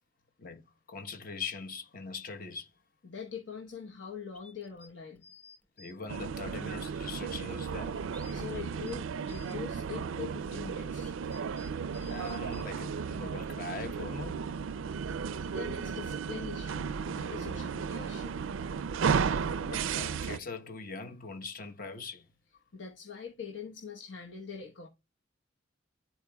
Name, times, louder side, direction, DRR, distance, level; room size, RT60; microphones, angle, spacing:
voice 1, 0.4-2.7 5.8-8.0 12.1-14.4 19.2-22.3, left 4 dB, 50° left, 1.0 m, -42 dB
voice 2, 3.0-5.2 8.3-11.1 15.4-18.4 22.7-24.9, left 6 dB, 75° left, 1.0 m, -43 dB
sound 1, 4.3-5.9 6.4-6.5 7.2-8.3 8.7-9.6 10.2-12.6, left 3 dB, 10° left, 0.7 m, -55 dB
sound 2, 6.1-20.4, right 6 dB, 90° right, 0.4 m, -34 dB
12.0 x 4.3 x 2.2 m
head